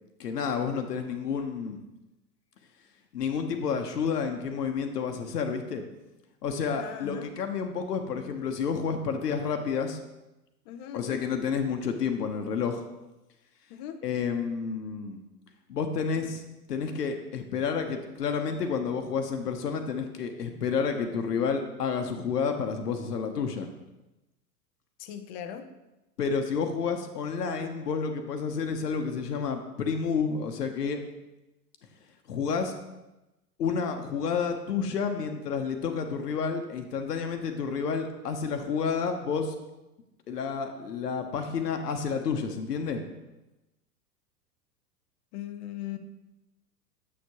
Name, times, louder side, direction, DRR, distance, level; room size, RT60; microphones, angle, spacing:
voice 1, 0.2-1.8 3.1-5.8 6.4-10.0 10.9-12.8 14.0-15.2 15.7-16.4 16.7-23.7 26.2-31.0 32.3-32.7 33.6-39.5 40.3-43.0, left 6 dB, 80° left, 6 dB, 0.8 m, -30 dB
voice 2, 6.7-7.3 10.7-11.2 13.7-14.0 25.0-25.7 45.3-46.0, left 10 dB, 25° left, 7 dB, 0.4 m, -39 dB
7.3 x 6.5 x 2.9 m, 0.99 s
figure-of-eight pair, 95°, 47 cm